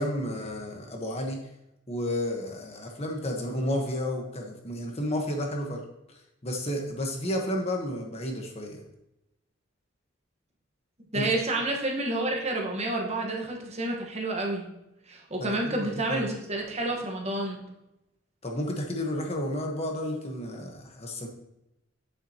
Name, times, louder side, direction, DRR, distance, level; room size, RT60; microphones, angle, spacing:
voice 1, 0.0-1.4 1.9-5.8 6.1-8.8 11.1-11.3 15.4-16.3 18.4-21.3, left 1 dB, 30° left, 2 dB, 1.2 m, -32 dB
voice 2, 11.1-14.7 15.1-17.6, right 2 dB, 35° right, 0 dB, 1.3 m, -29 dB
8.6 x 7.2 x 2.9 m, 0.88 s
head